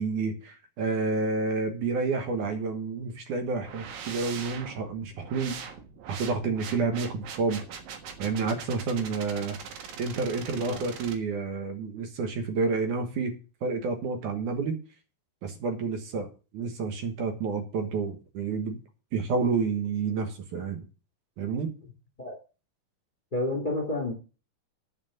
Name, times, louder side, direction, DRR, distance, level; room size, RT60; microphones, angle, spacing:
voice 1, 0.0-5.6 6.1-7.6 8.2-9.6 10.0-13.3 13.6-14.8 15.4-16.3 16.5-18.8 19.1-20.8 21.4-21.7, right 4 dB, 70° right, 6 dB, 2.8 m, -29 dB
sound 1, 3.7-11.2, right 6 dB, 90° right, 3.3 m, -42 dB
voice 2, 23.3-24.1, left 2 dB, 15° left, 2 dB, 1.9 m, -29 dB
9.9 x 5.7 x 7.7 m, 0.34 s
omnidirectional pair, 3.9 m